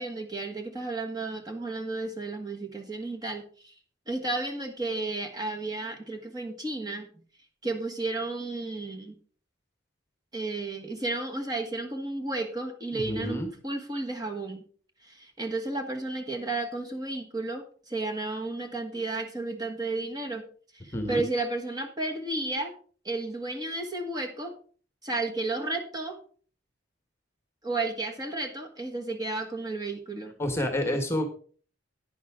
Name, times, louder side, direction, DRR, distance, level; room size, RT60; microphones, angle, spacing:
voice 1, 0.0-3.7 4.1-7.1 7.6-9.1 10.3-14.7 15.0-20.4 20.7-22.7 23.0-24.5 25.0-26.2 27.6-30.3, right 2 dB, 20° right, 2 dB, 1.4 m, -33 dB
voice 2, 12.9-13.5 20.9-21.2 30.4-31.3, left 1 dB, 15° left, 6 dB, 1.3 m, -29 dB
10.5 x 9.9 x 3.6 m, 0.43 s
head